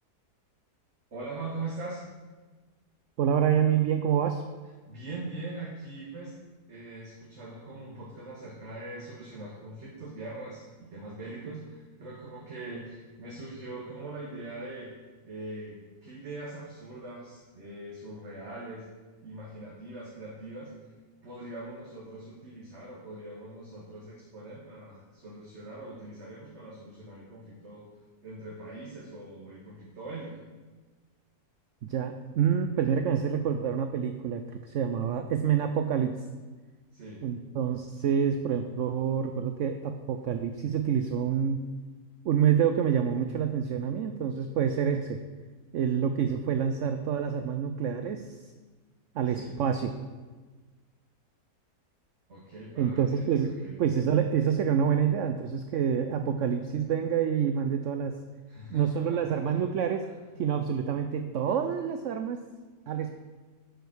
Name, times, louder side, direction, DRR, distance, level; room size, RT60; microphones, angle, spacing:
voice 1, 1.1-2.0 4.9-6.3 6.7-14.9 15.2-18.8 19.2-20.7 21.2-27.8 28.2-30.4 36.9-37.2 49.2-49.5 52.3-53.8 58.5-59.5, right 2 dB, 45° right, -4 dB, 1.7 m, -42 dB
voice 2, 3.2-4.4 31.9-36.1 37.2-41.6 42.2-45.2 45.7-48.3 49.1-49.9 52.8-53.5 53.8-58.1 58.7-60.1 60.4-62.4 62.9-63.1, right 8 dB, 65° right, 7 dB, 0.8 m, -27 dB
11.0 x 5.2 x 6.1 m, 1.3 s
omnidirectional pair, 1.7 m